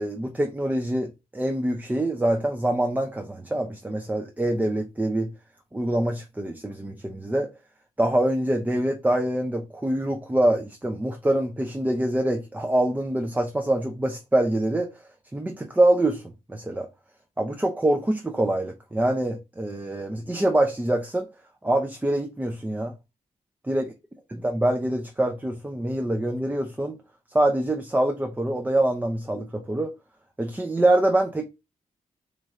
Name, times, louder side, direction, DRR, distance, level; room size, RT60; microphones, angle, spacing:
voice 1, 0.0-5.3 5.7-7.5 8.0-14.9 15.3-16.2 16.5-16.9 17.4-21.3 21.6-22.9 23.6-23.9 24.3-27.0 27.3-29.9 30.4-31.4, right 1 dB, 10° right, 0.5 m, -25 dB
3.2 x 2.6 x 3.5 m
cardioid pair, 75°, 14 cm